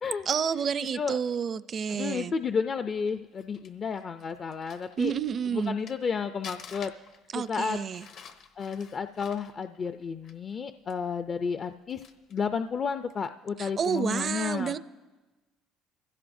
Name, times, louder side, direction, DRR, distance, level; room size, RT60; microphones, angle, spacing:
voice 1, 0.3-2.3 5.0-5.8 7.3-8.0 13.6-14.8, right 7 dB, 45° right, 16 dB, 0.4 m, -29 dB
voice 2, 1.9-5.1 5.5-6.9 7.3-7.8 8.6-12.0 12.3-14.8, left 6 dB, 40° left, 9 dB, 0.4 m, -32 dB
Crumpling crinkling, 3.1-6.1 6.4-10.6 10.9-11.0 11.6-12.5 13.0-13.3, left 6 dB, 65° left, 1.0 m, -49 dB
23.5 x 15.5 x 2.6 m, 1.2 s
supercardioid pair, 85°, 0 cm